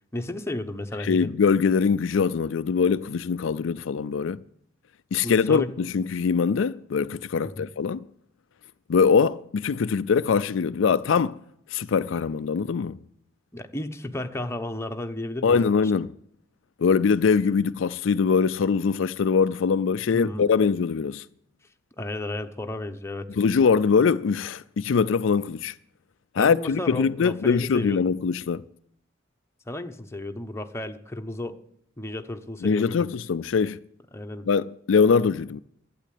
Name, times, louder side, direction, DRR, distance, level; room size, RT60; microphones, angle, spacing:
voice 1, 0.1-1.4 5.2-5.7 7.4-7.7 13.5-15.8 20.1-20.4 22.0-23.3 26.4-28.1 29.7-31.6 32.0-33.1 34.1-34.5, left 1 dB, 15° left, 1.0 m, -33 dB
voice 2, 1.0-4.4 5.1-8.0 8.9-11.4 11.7-13.0 15.4-16.1 16.8-21.2 23.4-25.7 26.3-28.6 32.6-33.8 34.5-35.6, left 5 dB, 70° left, 0.4 m, -22 dB
12.0 x 8.7 x 8.4 m
head